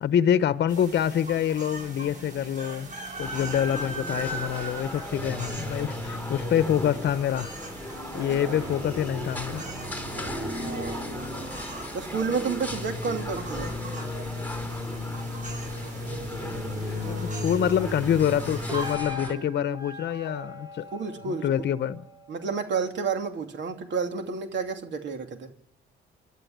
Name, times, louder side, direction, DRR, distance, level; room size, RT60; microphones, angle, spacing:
voice 1, 0.0-2.9 3.2-7.5 8.1-9.6 16.9-20.9 21.3-22.1, left 9 dB, 60° left, 0.9 m, -26 dB
sound 1, 0.7-18.9, equal, 40° right, 7.2 m, -36 dB
sound 2, 3.2-19.3, left 1 dB, 10° left, 4.4 m, -39 dB
sound 3, 4.3-7.0 8.0-14.8 18.7-22.9, equal, 20° right, 2.4 m, -40 dB
voice 2, 10.6-11.1 11.9-13.7 20.9-21.5 22.3-25.5, right 5 dB, 65° right, 2.9 m, -30 dB
27.0 x 12.0 x 9.4 m
cardioid pair, 90°, 20 cm